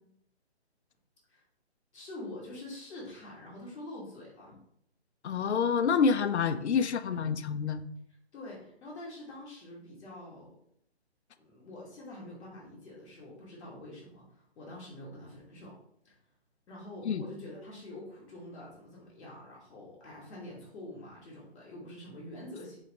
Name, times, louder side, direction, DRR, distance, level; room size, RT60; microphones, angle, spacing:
voice 1, 1.9-4.6 8.3-10.5 11.4-15.8 16.0-16.2 16.7-22.8, left 1 dB, ahead, -28 dB, 0.6 m, -46 dB
voice 2, 5.2-7.8 17.1-17.2, left 6 dB, 85° left, 10 dB, 0.5 m, -27 dB
4.1 x 4.0 x 3.2 m, 0.68 s
hypercardioid pair, 170°, 33 cm